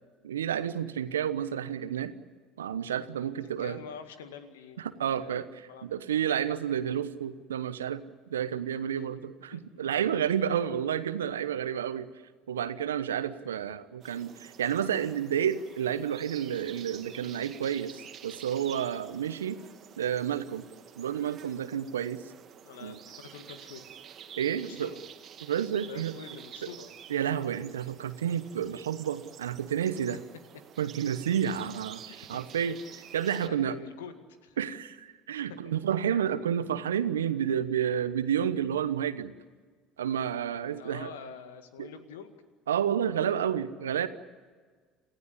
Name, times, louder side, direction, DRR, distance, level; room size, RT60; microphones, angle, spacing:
voice 1, 0.2-2.1 2.6-3.8 4.8-8.0 8.3-12.1 12.5-19.6 20.0-20.6 21.0-22.2 22.8-22.9 24.4-24.9 25.4-26.1 27.1-30.2 30.8-32.8 33.1-33.8 34.6-39.3 40.0-41.1 41.8-41.9 42.7-44.1, right 9 dB, 85° right, 13 dB, 1.0 m, -30 dB
voice 2, 3.4-5.9 9.5-9.9 22.7-23.8 24.6-25.0 25.9-26.9 32.1-32.4 33.4-34.2 34.4-34.6 40.7-42.4 43.7-43.9, left 7 dB, 80° left, 9 dB, 2.0 m, -46 dB
sound 1, 14.0-33.5, right 9 dB, 50° right, 1.9 m, -49 dB
28.5 x 15.5 x 9.8 m, 1.5 s
hypercardioid pair, 65°, 0 cm